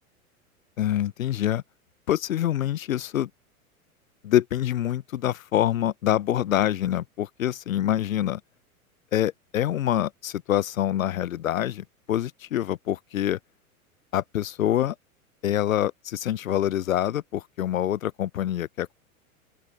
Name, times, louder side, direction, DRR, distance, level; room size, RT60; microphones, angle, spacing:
voice 1, 0.8-1.6 2.1-3.3 4.2-8.4 9.1-13.4 14.1-14.9 15.4-18.9, left 11 dB, 70° left, 0.8 m, -26 dB
open air
figure-of-eight pair, 95°, 43 cm